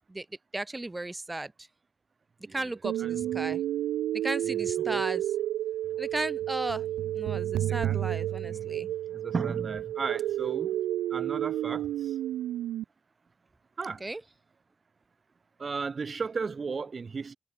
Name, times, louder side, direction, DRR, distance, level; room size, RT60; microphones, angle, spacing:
voice 1, 0.5-1.5 2.5-3.6 4.2-5.3 6.0-6.9 7.1-8.9 14.0-14.2, right 2 dB, 15° right, 1.4 m, -35 dB
sound 1, 2.8-12.8, right 13 dB, 90° right, 2.1 m, -31 dB
voice 2, 8.4-8.8 9.1-10.8 11.1-11.9 13.8-14.0 15.6-17.4, right 5 dB, 30° right, 4.6 m, -35 dB
cardioid pair, 125°, 0 cm